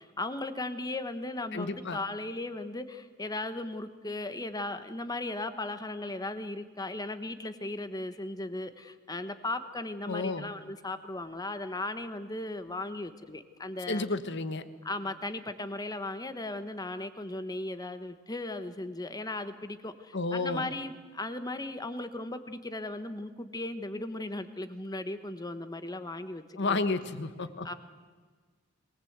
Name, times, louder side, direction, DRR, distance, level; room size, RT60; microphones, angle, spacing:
voice 1, 0.0-14.0 14.8-26.8 27.6-27.7, left 2 dB, 20° left, 10 dB, 1.2 m, -37 dB
voice 2, 1.5-2.0 10.1-10.5 13.9-14.6 20.1-20.7 26.5-27.7, left 3 dB, 55° left, 11 dB, 1.3 m, -31 dB
22.5 x 19.0 x 8.1 m, 1.5 s
head